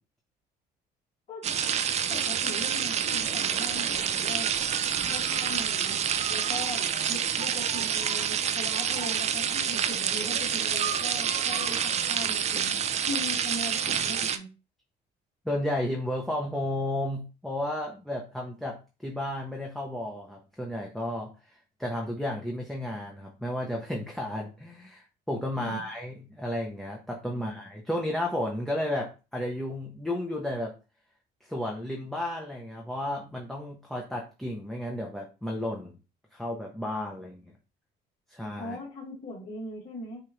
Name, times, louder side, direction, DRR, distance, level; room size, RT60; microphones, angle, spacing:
sound 1, 1.4-14.4, right 8 dB, 40° right, 0.4 m, -28 dB
voice 1, 2.1-4.5 5.1-6.0 6.3-12.8 13.1-14.5 25.6-25.8 27.3-27.5 38.6-40.2, left 1 dB, 55° left, -8 dB, 2.0 m, -39 dB
voice 2, 15.4-30.7 31.4-35.9 36.3-37.4 38.3-38.8, left 1 dB, ahead, -1 dB, 0.7 m, -33 dB
4.8 x 2.5 x 3.0 m, 0.32 s
cardioid pair, 110°, 17 cm